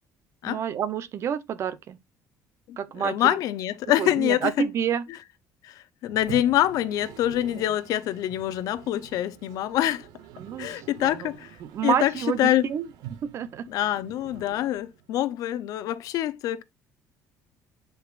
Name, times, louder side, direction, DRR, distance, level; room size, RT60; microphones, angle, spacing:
voice 1, 0.4-2.0 2.8-3.2 4.0-5.0 10.4-10.7 11.0-11.3 11.6-12.9 13.2-13.9, right 8 dB, 45° right, 0.8 m, -29 dB
voice 2, 2.7-4.7 5.6-5.7 6.0-10.1 10.6-11.5 11.8-12.1 12.4-12.7 13.7-16.6, left 13 dB, 65° left, 0.7 m, -25 dB
Toilet flush, 6.1-15.2, right 11 dB, 80° right, 0.8 m, -46 dB
9.9 x 4.9 x 2.5 m
cardioid pair, 145°, 7 cm